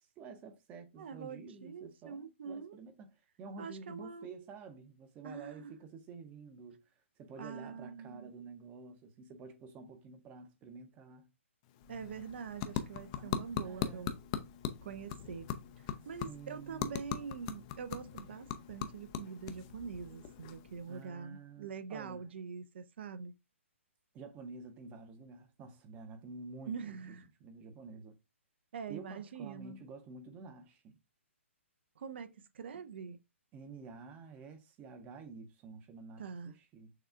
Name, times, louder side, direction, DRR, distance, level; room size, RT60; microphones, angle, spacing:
voice 1, 0.2-11.3 13.2-14.2 16.2-16.9 20.9-22.2 24.1-28.2 28.9-31.0 33.5-36.9, right 4 dB, 20° right, 0.7 m, -50 dB
voice 2, 1.0-2.8 3.6-4.3 5.2-5.6 7.4-8.3 11.9-14.2 14.8-15.5 15.8-23.3 26.7-27.3 28.7-29.9 32.0-33.2 36.2-36.5, right 6 dB, 55° right, 0.5 m, -44 dB
sound 1, 11.6-21.1, left 9 dB, 30° left, 0.4 m, -41 dB
6.4 x 2.3 x 2.4 m
figure-of-eight pair, 130°, 7 cm